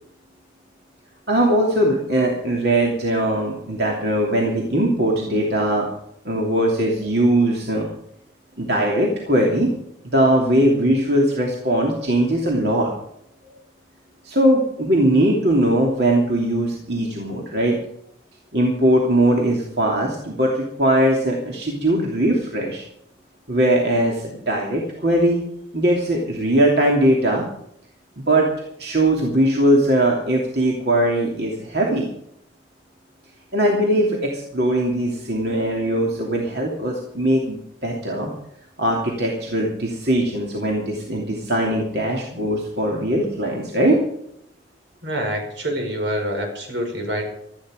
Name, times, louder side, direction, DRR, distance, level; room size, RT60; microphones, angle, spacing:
voice 1, 1.3-5.9 6.2-7.9 8.6-9.7 10.0-12.9 14.2-17.8 18.5-22.8 23.5-25.4 25.7-27.4 28.2-28.5 28.8-32.1 33.5-37.6 37.8-38.3 38.8-44.0, right 1 dB, 60° right, -1 dB, 2.8 m, -20 dB
voice 2, 45.0-47.2, equal, 80° right, 3 dB, 5.3 m, -26 dB
17.5 x 13.5 x 5.1 m, 0.74 s
head